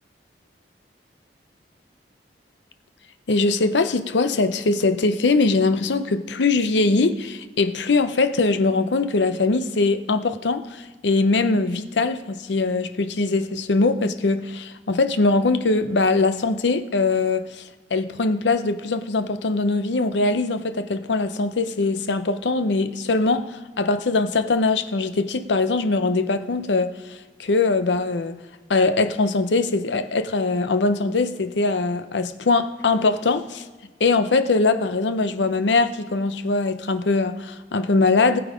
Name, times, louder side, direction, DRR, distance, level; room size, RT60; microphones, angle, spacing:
voice 1, 3.3-17.6 17.9-28.4 28.7-33.6 34.0-38.4, left 3 dB, 75° left, 0.6 m, -22 dB
19.5 x 6.9 x 5.0 m
head